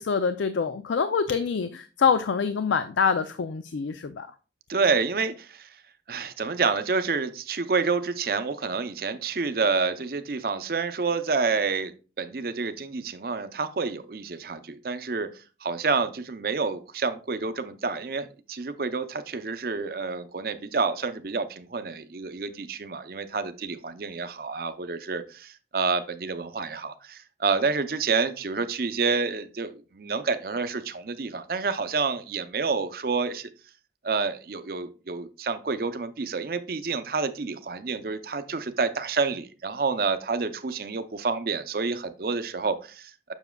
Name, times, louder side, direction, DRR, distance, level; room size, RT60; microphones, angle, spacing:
voice 1, 0.0-4.3, left 6 dB, 85° left, 11 dB, 0.4 m, -25 dB
voice 2, 4.7-5.7 6.1-11.9 12.2-15.3 15.6-33.5 34.0-43.3, right 4 dB, 55° right, 10 dB, 0.6 m, -28 dB
7.1 x 6.6 x 2.2 m, 0.34 s
head